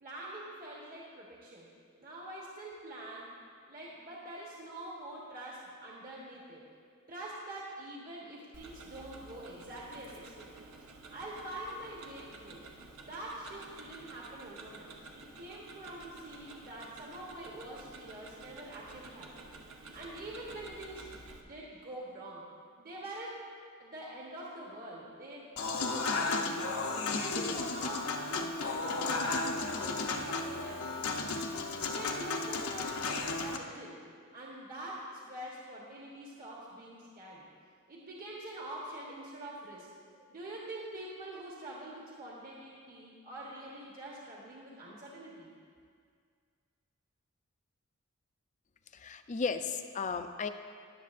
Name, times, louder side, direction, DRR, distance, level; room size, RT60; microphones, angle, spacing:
voice 1, 0.0-1.7 2.0-3.3 3.7-6.6 7.1-10.6 11.1-12.6 13.0-21.2 21.4-22.4 22.8-23.4 23.8-26.8 27.1-34.0 34.3-37.4 37.9-45.5, right 1 dB, 45° right, -5 dB, 1.3 m, -45 dB
Tick-tock, 8.5-21.4, right 3 dB, 75° right, 1.0 m, -51 dB
Human voice / Acoustic guitar / Piano, 25.6-33.6, left 3 dB, 75° left, 0.8 m, -34 dB
voice 2, 48.9-50.5, left 5 dB, 35° left, 8 dB, 0.5 m, -35 dB
20.5 x 7.3 x 2.5 m, 2.1 s
head